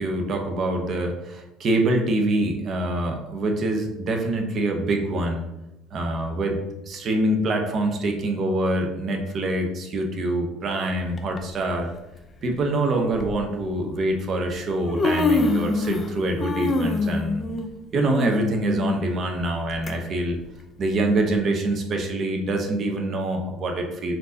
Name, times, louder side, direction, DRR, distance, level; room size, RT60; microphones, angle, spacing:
voice 1, 0.0-5.5 5.9-6.6 6.8-11.9 12.4-17.4 17.9-20.4 20.8-24.1, right 2 dB, 35° right, 3 dB, 0.7 m, -25 dB
Human voice, 11.2-11.4 12.4-12.5 13.1-13.3 14.3-14.4 14.7-16.1 16.4-19.9 20.3-20.4 21.3-21.4, left 3 dB, 20° left, 0.4 m, -25 dB
4.4 x 2.6 x 3.9 m, 0.94 s
cardioid pair, 150°, 0 cm